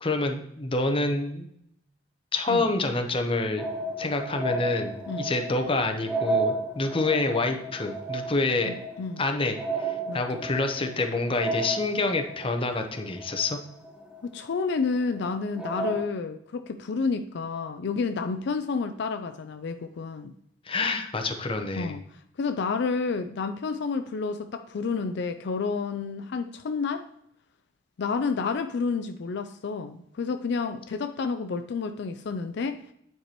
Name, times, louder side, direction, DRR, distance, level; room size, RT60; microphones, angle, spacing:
voice 1, 0.0-1.5 2.3-3.7 4.0-8.7 9.2-13.6 20.7-21.9, left 2 dB, 30° left, 5 dB, 0.7 m, -27 dB
sound 1, 3.6-14.4 14.8-14.9 15.6-16.0, right 2 dB, 5° right, 0.8 m, -33 dB
voice 2, 8.6-9.2 10.1-10.4 14.2-20.3 21.8-27.1 28.0-32.8, left 4 dB, 65° left, 8 dB, 0.4 m, -30 dB
9.2 x 4.7 x 2.9 m, 0.73 s
head